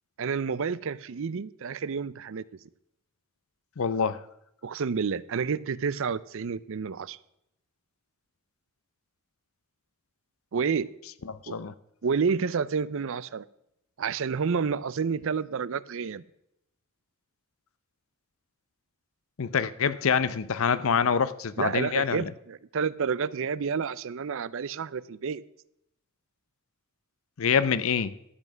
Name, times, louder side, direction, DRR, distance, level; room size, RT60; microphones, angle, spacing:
voice 1, 0.2-2.4 4.6-7.2 10.5-10.9 11.5-11.6 12.0-13.5 14.0-16.2 21.6-25.4, right 5 dB, 60° right, 0.5 m, -29 dB
voice 2, 3.8-4.2 11.3-11.7 19.4-22.3 27.4-28.1, left 6 dB, 65° left, 0.6 m, -26 dB
12.5 x 7.9 x 6.1 m
head